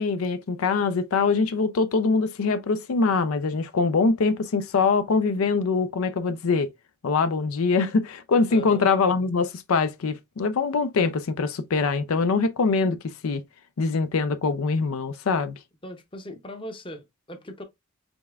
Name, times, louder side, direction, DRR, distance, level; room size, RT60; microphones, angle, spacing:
voice 1, 0.0-6.7 7.0-13.0 13.2-13.4 13.8-15.6, left 4 dB, 85° left, 0.5 m, -23 dB
voice 2, 8.5-8.9 15.8-17.6, equal, 25° left, 0.7 m, -39 dB
5.2 x 3.4 x 2.3 m
head